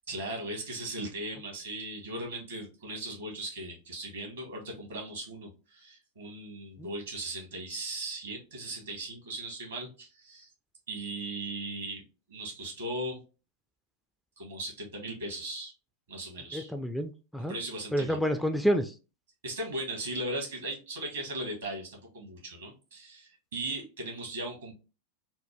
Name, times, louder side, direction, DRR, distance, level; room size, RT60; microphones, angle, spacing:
voice 1, 0.1-10.5 10.9-12.0 12.3-13.2 14.4-15.7 16.1-16.7 17.5-18.2 19.4-24.7, right 1 dB, 65° right, 1.7 m, -38 dB
voice 2, 16.5-17.5 17.9-18.9, equal, ahead, 0.3 m, -29 dB
4.2 x 2.1 x 3.3 m
figure-of-eight pair, 90°, 0 cm